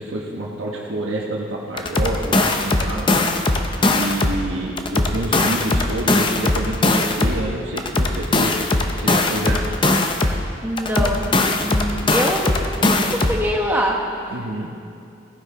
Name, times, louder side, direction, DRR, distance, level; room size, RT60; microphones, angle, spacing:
voice 1, 0.0-3.1 3.8-8.6 9.0-9.8 14.3-14.7, right 1 dB, 80° right, -3 dB, 1.2 m, -27 dB
sound 1, 1.8-4.4 4.8-7.4 7.8-10.4 10.8-13.4, left 2 dB, 25° left, 0.6 m, -20 dB
voice 2, 10.6-11.3 11.6-12.5 12.8-14.0, equal, 10° right, -1 dB, 1.2 m, -23 dB
16.5 x 10.0 x 3.8 m, 2.5 s
head